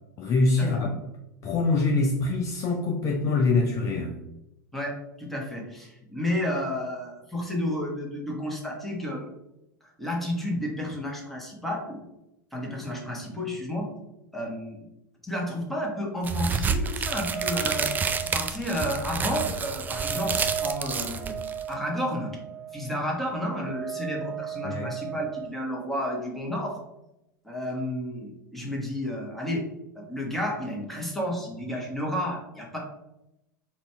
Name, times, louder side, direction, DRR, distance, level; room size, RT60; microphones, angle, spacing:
voice 1, 0.2-0.9 1.4-4.2 24.6-24.9, left 3 dB, 30° left, 1 dB, 0.6 m, -24 dB
voice 2, 4.7-9.3 9.8-12.0 12.5-13.9 14.3-14.8 15.2-17.9 18.3-21.4 21.7-22.4 22.7-26.8 27.4-29.7 29.9-32.8, equal, ahead, -2 dB, 1.4 m, -31 dB
sound 1, 16.2-21.7, right 5 dB, 15° right, 0.4 m, -29 dB
sound 2, 17.1-25.5, right 8 dB, 55° right, 0.9 m, -36 dB
4.1 x 2.7 x 4.4 m, 0.88 s
figure-of-eight pair, 90°, 10 cm